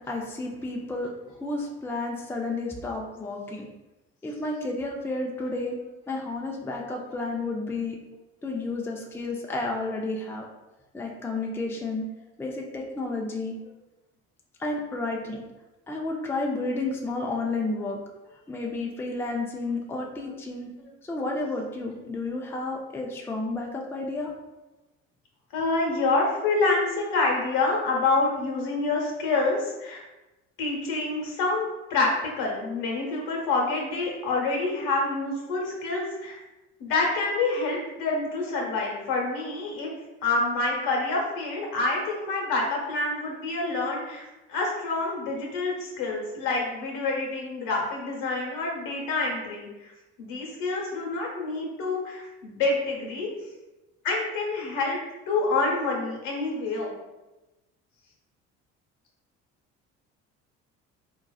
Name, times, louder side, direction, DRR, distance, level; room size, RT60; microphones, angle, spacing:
voice 1, 0.1-1.1 1.4-3.7 4.2-5.8 6.1-8.0 8.4-10.4 10.9-12.1 12.4-13.6 14.6-15.4 15.9-18.0 18.5-20.7 21.1-24.3, left 2 dB, 5° left, -1 dB, 0.5 m, -31 dB
voice 2, 25.5-30.0 30.6-36.4 36.8-39.9 40.2-44.2 44.5-49.9 50.2-53.3 54.0-55.0 55.3-57.0, left 3 dB, 70° left, -1 dB, 1.0 m, -27 dB
3.8 x 2.4 x 2.3 m, 1.0 s
hypercardioid pair, 65°, 35 cm